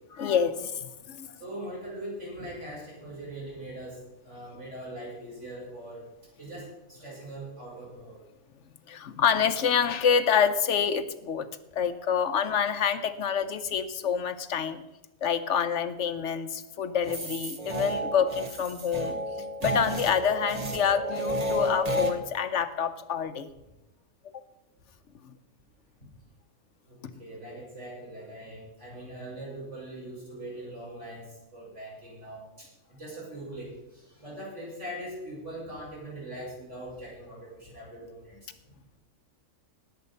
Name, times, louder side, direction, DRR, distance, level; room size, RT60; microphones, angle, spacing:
voice 1, 0.2-1.4 8.9-11.5 11.7-14.8 15.2-19.2 19.6-23.5 24.2-24.4 25.2-25.3 27.0-27.1, left 7 dB, 65° left, 12 dB, 1.1 m, -27 dB
voice 2, 1.4-6.0 6.4-8.2 26.9-33.7 33.9-38.5, right 1 dB, 60° right, -5 dB, 6.4 m, -41 dB
sound 1, 17.0-22.1, equal, 30° right, 1.3 m, -31 dB
19.0 x 7.5 x 5.5 m, 0.95 s
omnidirectional pair, 1.4 m